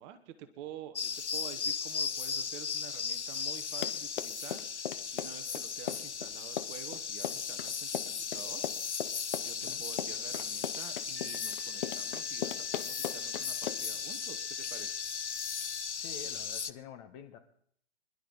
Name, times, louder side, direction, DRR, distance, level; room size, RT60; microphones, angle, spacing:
voice 1, 0.0-8.6 9.4-15.0, right 10 dB, 25° right, 1.1 m, -49 dB
sound 1, 1.0-16.7, left 6 dB, 85° left, 0.8 m, -36 dB
Run, 3.6-14.0, left 10 dB, 50° left, 0.9 m, -38 dB
Wind instrument woodwind instrument, 11.1-15.9, left 3 dB, ahead, 4.0 m, -52 dB
voice 2, 16.0-17.4, left 8 dB, 30° left, 1.3 m, -48 dB
24.5 x 11.5 x 4.0 m
hypercardioid pair, 130°, 34 cm